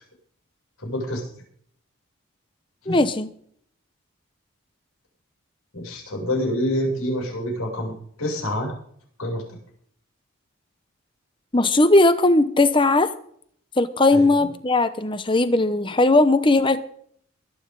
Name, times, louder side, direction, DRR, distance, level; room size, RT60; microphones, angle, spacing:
voice 1, 0.8-1.2 2.8-3.0 5.7-7.9 8.2-8.7 9.2-9.4 14.1-14.5, left 1 dB, 85° left, -1 dB, 7.4 m, -27 dB
voice 2, 2.9-3.3 11.5-13.1 13.8-16.8, left 2 dB, 25° left, 12 dB, 0.9 m, -18 dB
23.0 x 9.6 x 3.9 m, 0.62 s
head